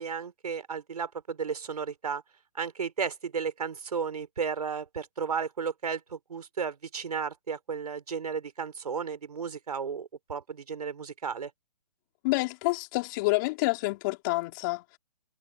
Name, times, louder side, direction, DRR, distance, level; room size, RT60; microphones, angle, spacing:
voice 1, 0.0-2.2 2.5-11.5, right 6 dB, 70° right, 4.7 m, -34 dB
voice 2, 12.2-15.0, left 23 dB, 30° left, 5.1 m, -28 dB
hypercardioid pair, 145°, 20 cm